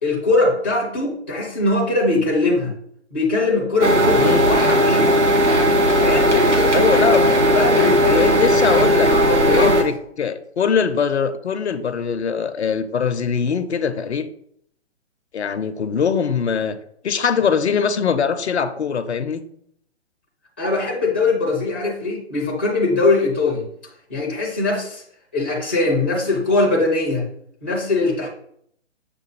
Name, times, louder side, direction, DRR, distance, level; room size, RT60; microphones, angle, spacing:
voice 1, 0.0-2.7 3.1-5.1 5.9-6.8 7.5-8.3 9.1-9.7 20.6-23.6 24.1-25.0 25.3-27.2 27.6-28.3, left 3 dB, 10° left, -3 dB, 0.4 m, -21 dB
sound 1, 3.8-9.8, equal, 85° right, 1.0 m, -16 dB
voice 2, 6.7-7.4 8.1-14.3 15.3-16.8 17.0-19.4, left 6 dB, 70° left, 11 dB, 0.5 m, -22 dB
6.6 x 2.2 x 3.1 m, 0.68 s
figure-of-eight pair, 130°, 34 cm